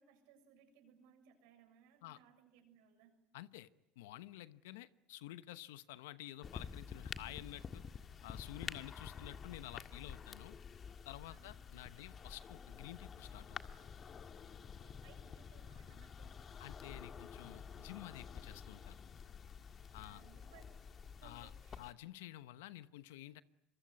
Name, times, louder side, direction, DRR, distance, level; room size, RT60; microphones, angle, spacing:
voice 1, 0.0-3.1 11.3-11.6 11.9-12.0 14.6-16.4 20.0-20.8 21.2-21.8, right 7 dB, 75° right, 6 dB, 7.0 m, -65 dB
voice 2, 3.3-3.7 4.0-7.8 8.2-10.6 11.0-13.6 16.6-19.0 19.9-20.2 21.2-21.5 21.8-23.4, left 15 dB, 85° left, 14 dB, 1.0 m, -51 dB
sound 1, 6.4-21.9, left 6 dB, 40° left, 1.8 m, -50 dB
26.5 x 23.5 x 9.5 m, 0.86 s
supercardioid pair, 85°, 0 cm